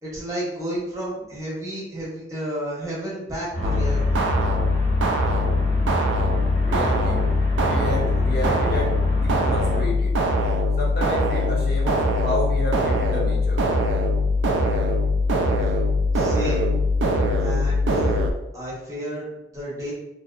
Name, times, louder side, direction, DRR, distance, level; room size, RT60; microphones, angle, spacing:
voice 1, 0.0-4.2 16.1-16.8 17.4-18.3 18.5-19.9, right 1 dB, 20° right, -6 dB, 0.7 m, -31 dB
sound 1, 3.5-9.8, equal, 15° left, 0.6 m, -28 dB
sound 2, 3.6-18.3, left 1 dB, 85° right, 0.3 m, -22 dB
voice 2, 6.6-7.2 7.6-8.9 9.2-10.1 10.8-13.6, left 1 dB, 55° left, -3 dB, 0.6 m, -30 dB
2.6 x 2.0 x 2.3 m, 0.91 s
head